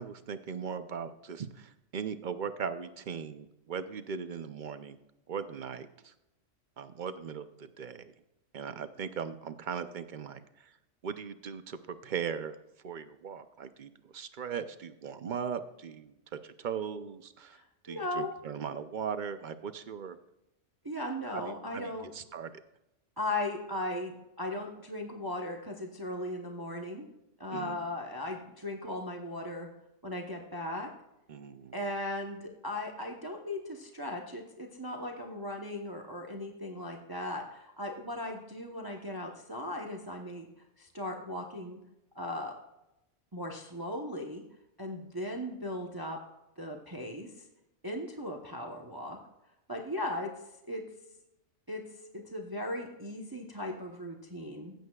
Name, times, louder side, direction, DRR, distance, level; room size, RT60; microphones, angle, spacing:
voice 1, 0.0-5.0 5.3-6.1 6.8-8.1 8.5-10.7 11.0-12.6 12.8-16.2 16.4-17.6 17.8-20.2 21.3-22.6 27.5-27.9 31.3-31.7, right 7 dB, 50° right, 11 dB, 0.6 m, -39 dB
voice 2, 17.9-18.3 20.8-22.1 23.2-27.1 27.4-29.7 30.0-30.9 31.7-40.5 40.8-41.8 42.2-42.5 43.3-44.4 44.8-46.2 46.6-47.4 47.8-49.2 49.7-50.3 50.7-50.8 51.7-51.8 52.1-54.7, left 1 dB, 20° right, 1 dB, 0.9 m, -37 dB
16.0 x 8.1 x 2.3 m, 0.89 s
omnidirectional pair, 1.3 m